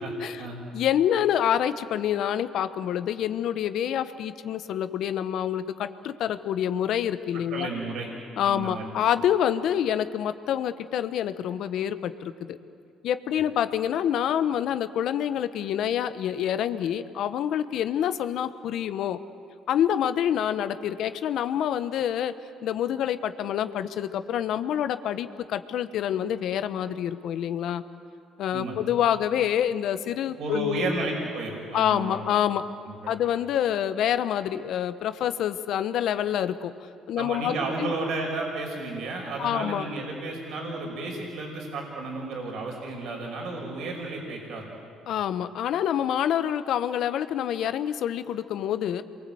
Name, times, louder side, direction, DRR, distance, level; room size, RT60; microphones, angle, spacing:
voice 1, 0.7-7.7 8.4-12.6 13.0-19.2 19.7-22.3 22.6-27.8 28.4-30.9 31.7-32.7 33.1-36.7 37.1-37.9 39.4-39.8 45.1-49.0, left 10 dB, 70° left, 11 dB, 1.1 m, -27 dB
voice 2, 7.3-8.1 8.4-8.9 28.5-28.8 30.4-32.3 32.9-33.2 37.2-44.7, right 2 dB, 70° right, 0 dB, 5.7 m, -32 dB
28.5 x 23.0 x 8.0 m, 2.4 s
supercardioid pair, 75°, 0 cm